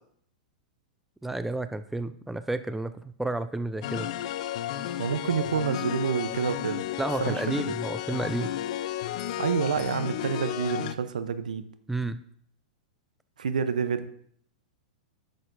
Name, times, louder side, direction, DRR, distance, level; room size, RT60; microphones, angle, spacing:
voice 1, 1.2-4.1 7.0-8.6 11.9-12.2, right 2 dB, 5° right, 12 dB, 0.3 m, -31 dB
sound 1, 3.8-10.9, left 12 dB, 60° left, 0.4 m, -33 dB
voice 2, 5.0-6.9 7.2-7.4 9.4-11.6 13.4-14.1, right 7 dB, 85° right, 12 dB, 0.6 m, -28 dB
9.8 x 6.4 x 2.6 m, 0.63 s
hypercardioid pair, 110°, 4 cm